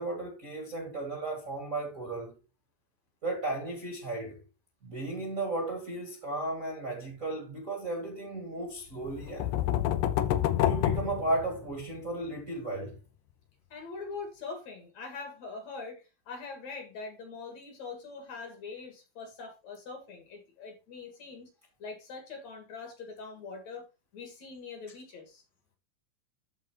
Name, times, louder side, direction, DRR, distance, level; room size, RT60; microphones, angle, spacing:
voice 1, 0.0-2.4 3.2-4.4 4.8-9.5 10.6-13.0, right 2 dB, 30° right, 1.8 m, -35 dB
sound 1, 9.0-12.0, left 11 dB, 75° left, 2.0 m, -28 dB
voice 2, 13.7-21.5 21.8-23.8 24.1-25.4, left 4 dB, 55° left, 2.9 m, -43 dB
13.5 x 4.6 x 2.9 m
omnidirectional pair, 4.1 m